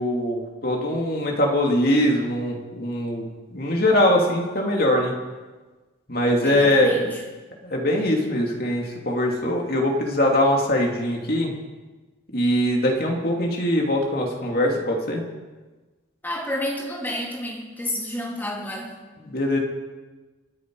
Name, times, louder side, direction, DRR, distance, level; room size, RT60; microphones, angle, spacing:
voice 1, 0.0-5.1 6.1-7.1 7.6-11.5 12.3-15.2 19.2-19.6, left 1 dB, 50° left, 0 dB, 2.9 m, -22 dB
voice 2, 6.4-7.2 16.2-18.9, left 1 dB, 10° left, -3 dB, 3.3 m, -30 dB
27.5 x 10.0 x 4.9 m, 1.3 s
head